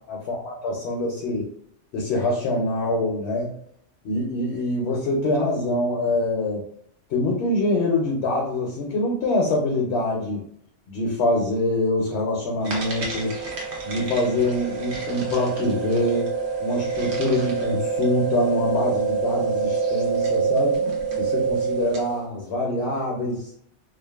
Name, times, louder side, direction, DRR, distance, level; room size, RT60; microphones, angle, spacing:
voice 1, 0.1-1.5 1.9-3.5 4.0-6.6 7.1-10.4 10.9-13.4 13.8-16.3 16.6-23.5, left 1 dB, 70° left, -1 dB, 0.8 m, -25 dB
sound 1, 12.6-22.2, right 5 dB, 65° right, 1.0 m, -26 dB
2.5 x 2.3 x 2.2 m, 0.66 s
omnidirectional pair, 1.2 m